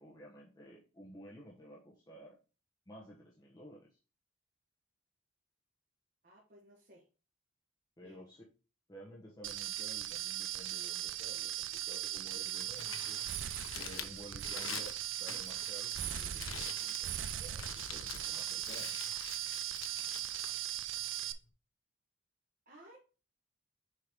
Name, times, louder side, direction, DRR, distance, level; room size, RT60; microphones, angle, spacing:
voice 1, 0.0-2.4 2.9-4.0 8.0-8.4 8.9-13.2 13.7-14.9 15.2-19.0, equal, 20° left, -4 dB, 1.1 m, -53 dB
voice 2, 6.2-7.0 8.0-8.2 22.7-23.0, right 1 dB, 45° right, -2 dB, 1.4 m, -58 dB
sound 1, 9.4-21.3, right 12 dB, 75° right, 0.5 m, -39 dB
Crumpling crinkling, 12.4-21.5, left 8 dB, 85° left, 0.7 m, -47 dB
6.7 x 4.6 x 3.6 m, 0.33 s
head